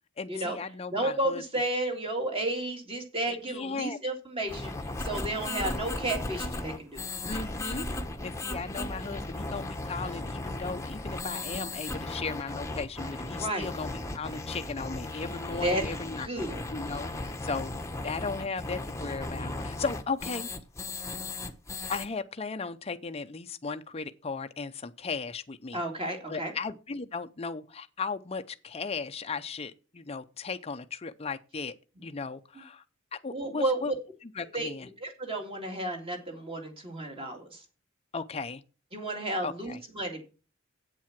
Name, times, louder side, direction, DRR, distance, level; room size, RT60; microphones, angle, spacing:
voice 1, 0.2-1.4 3.3-4.0 7.3-7.8 8.2-16.3 16.7-17.7 18.0-20.5 21.9-25.8 26.1-31.7 32.0-32.8 33.2-33.9 34.4-34.9 38.1-38.6 39.4-39.8, left 4 dB, 30° left, 0.6 m, -36 dB
voice 2, 0.9-4.7 5.0-7.0 13.3-13.7 15.6-15.8 16.2-16.6 25.7-26.5 33.3-33.9 34.5-34.7 35.0-37.6 38.9-40.2, right 1 dB, 25° right, 2.2 m, -32 dB
sound 1, 4.5-22.1, left 2 dB, 15° left, 0.9 m, -36 dB
8.4 x 7.5 x 5.9 m
head